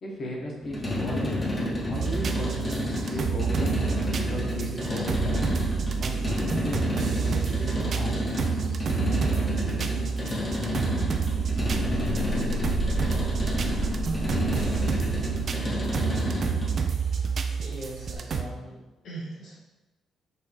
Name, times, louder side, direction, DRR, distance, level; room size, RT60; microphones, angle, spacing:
voice 1, 0.0-1.5 1.8-3.8 4.2-5.5 6.0-6.8 7.1-8.4, left 1 dB, 50° left, -4 dB, 1.3 m, -36 dB
sound 1, 0.6-16.8, left 1 dB, 20° left, 0.9 m, -30 dB
sound 2, 1.9-18.4, right 6 dB, 45° right, 0.4 m, -29 dB
sound 3, 7.9-18.1, equal, 60° right, 0.8 m, -36 dB
voice 2, 17.6-19.5, right 2 dB, 70° left, -7 dB, 1.5 m, -40 dB
5.9 x 2.7 x 3.3 m, 1.1 s
cardioid pair, 130°, 0 cm